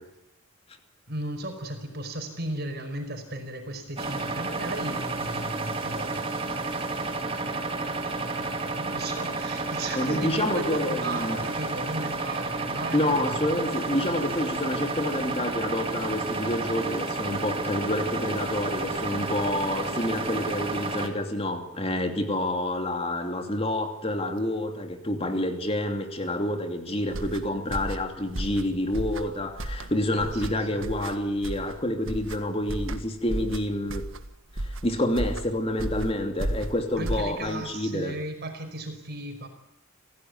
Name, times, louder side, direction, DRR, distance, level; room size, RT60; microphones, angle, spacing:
voice 1, 1.1-6.7 7.2-7.7 8.0-13.4 30.1-30.9 37.0-39.5, right 1 dB, 50° right, 6 dB, 5.1 m, -36 dB
sound 1, 4.0-21.1, right 3 dB, 25° right, 2.5 m, -31 dB
voice 2, 9.9-11.4 12.9-34.1 34.6-38.1, left 1 dB, 25° left, 6 dB, 2.8 m, -28 dB
sound 2, 27.1-37.7, right 1 dB, 65° right, 1.7 m, -34 dB
27.0 x 17.0 x 9.5 m, 0.83 s
head